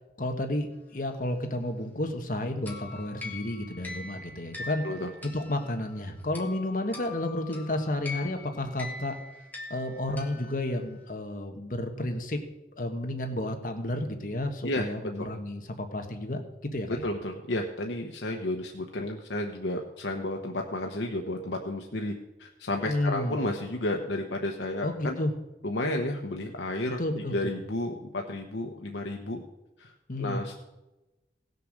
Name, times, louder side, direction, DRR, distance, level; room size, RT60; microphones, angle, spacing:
voice 1, 0.2-4.8 5.2-9.1 9.7-12.4 12.8-17.0 22.8-23.4 24.8-25.3 27.0-27.5 30.1-30.4, left 1 dB, 50° left, 5 dB, 1.4 m, -31 dB
sound 1, 2.7-11.0, left 3 dB, 10° left, 1.7 m, -43 dB
voice 2, 16.9-22.1 22.4-25.1 25.6-27.0 27.3-29.4 29.8-29.9 30.2-30.5, left 1 dB, 90° left, 2 dB, 1.0 m, -32 dB
17.0 x 6.7 x 6.5 m, 1.0 s
head